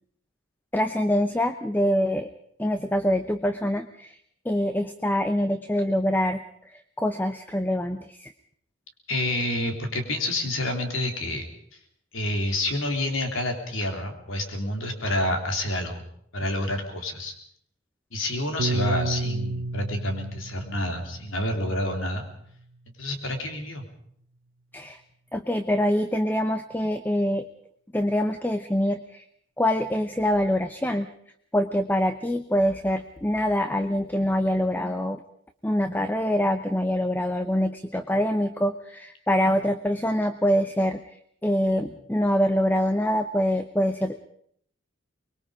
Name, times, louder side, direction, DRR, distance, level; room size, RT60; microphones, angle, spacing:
voice 1, 0.7-2.3 2.6-4.2 4.4-8.3 24.7-25.0 25.3-27.5 27.9-29.2 29.6-31.1 31.5-35.2 35.6-41.0 41.4-44.2, equal, 10° left, 9 dB, 0.8 m, -25 dB
voice 2, 9.1-11.5 12.1-16.0 16.3-17.3 18.1-22.3 23.0-23.8, left 1 dB, 85° left, 5 dB, 3.4 m, -28 dB
Piano, 18.6-23.0, right 2 dB, 80° right, 0.9 m, -32 dB
24.0 x 21.5 x 5.0 m, 0.66 s
head